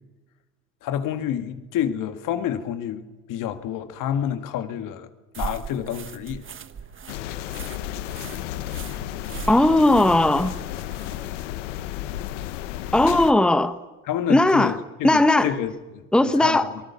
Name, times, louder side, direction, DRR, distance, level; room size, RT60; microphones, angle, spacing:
voice 1, 0.8-5.1 5.4-6.4 14.0-16.8, left 9 dB, 60° left, 2.1 m, -29 dB
sound 1, 5.3-11.4, right 7 dB, 35° right, 1.4 m, -39 dB
sound 2, 7.1-13.3, left 13 dB, 85° left, 1.1 m, -33 dB
voice 2, 9.5-10.5 12.9-13.8 14.3-14.8 15.0-15.5 16.1-16.7, left 1 dB, 5° left, 1.1 m, -18 dB
26.5 x 19.5 x 7.2 m
hypercardioid pair, 75°, 35 cm